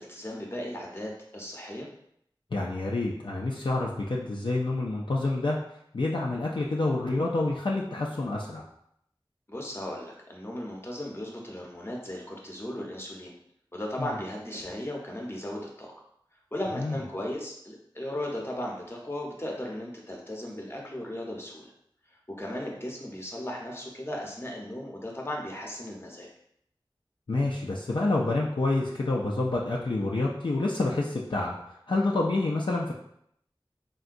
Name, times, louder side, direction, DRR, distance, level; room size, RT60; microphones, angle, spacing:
voice 1, 0.0-1.9 9.5-13.4 13.7-15.9 16.5-21.7 22.1-26.3, left 1 dB, 25° left, -2 dB, 0.7 m, -36 dB
voice 2, 2.5-5.6 5.9-8.7 14.0-14.1 16.8-17.0 27.3-32.9, left 2 dB, 65° left, -3 dB, 0.4 m, -28 dB
3.7 x 2.2 x 2.5 m, 0.72 s
wide cardioid pair, 45°, 9 cm